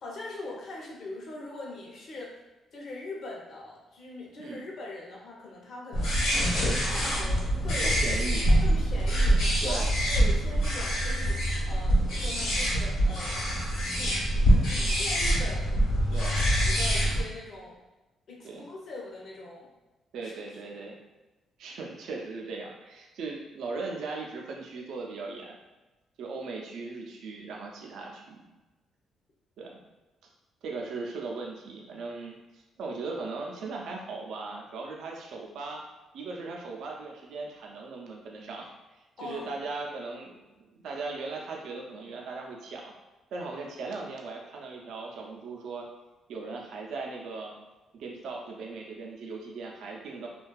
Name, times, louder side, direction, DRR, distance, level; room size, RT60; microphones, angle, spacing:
voice 1, 0.0-2.3 2.7-6.3 6.9-7.9 8.6-13.3 13.9-14.3 14.7-15.9 16.6-17.8 18.3-19.7 20.2-20.4 20.7-20.8 39.2-39.6, left 2 dB, 60° left, -3 dB, 0.6 m, -41 dB
sound 1, 5.9-17.2, equal, 90° left, 1.0 m, -25 dB
voice 2, 7.8-8.5 9.6-9.9 16.1-16.5 18.4-18.7 20.1-21.0 21.6-25.6 26.2-28.5 29.6-29.8 30.6-35.8 36.1-38.7 39.2-42.9 43.3-45.9 46.3-47.5 47.9-50.3, right 3 dB, 75° right, 0 dB, 0.4 m, -38 dB
2.6 x 2.2 x 2.2 m, 1.1 s
cardioid pair, 90°, 0 cm